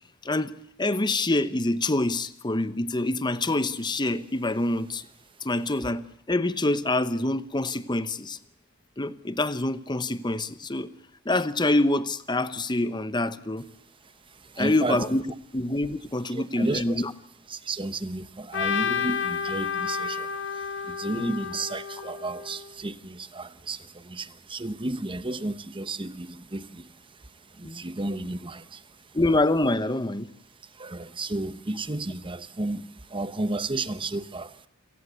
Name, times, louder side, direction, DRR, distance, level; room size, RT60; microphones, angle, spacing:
voice 1, 0.8-5.1 5.4-8.4 9.0-10.9 11.2-13.7 14.6-15.2 15.5-17.1 21.1-21.4 27.6-27.8 29.1-30.3, left 2 dB, 20° left, 0.9 m, -26 dB
voice 2, 14.3-15.0 16.3-17.0 17.5-26.9 27.5-28.8 30.7-34.7, right 2 dB, 25° right, 1.0 m, -33 dB
Trumpet, 18.5-22.7, left 6 dB, 55° left, 1.6 m, -30 dB
29.0 x 18.0 x 8.1 m
head